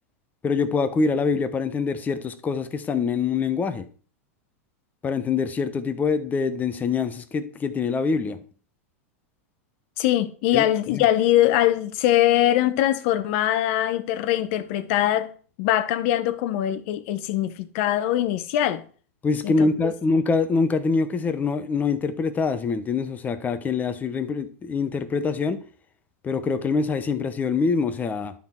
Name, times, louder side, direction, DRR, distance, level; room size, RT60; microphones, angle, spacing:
voice 1, 0.4-3.9 5.0-8.4 10.5-10.6 10.9-11.1 19.2-25.6 26.2-28.3, left 4 dB, 20° left, 0.9 m, -24 dB
voice 2, 10.0-18.8 19.4-19.5, left 13 dB, 55° left, 0.9 m, -22 dB
11.5 x 3.9 x 4.4 m
hypercardioid pair, 115°, 8 cm